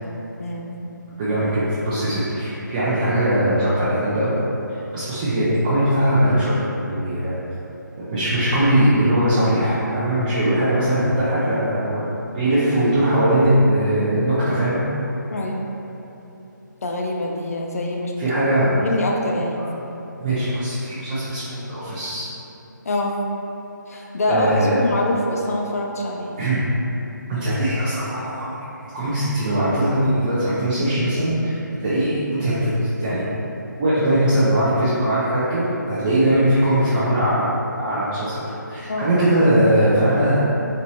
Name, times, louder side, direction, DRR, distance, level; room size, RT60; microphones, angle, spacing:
voice 1, 0.4-0.7 15.3-15.6 16.8-18.1 18.8-19.6 22.8-23.2 23.9-26.3 38.9-39.1, left 1 dB, 50° left, 0 dB, 0.5 m, -24 dB
voice 2, 1.2-4.3 4.7-6.5 6.8-7.3 8.1-12.1 12.3-14.8 18.2-18.7 20.2-22.3 24.3-24.8 26.4-26.6 27.3-28.5 28.9-33.3 33.8-38.3 38.7-40.4, right 1 dB, 25° right, -11 dB, 0.5 m, -20 dB
4.1 x 2.6 x 3.0 m, 3.0 s
figure-of-eight pair, 155°, 11 cm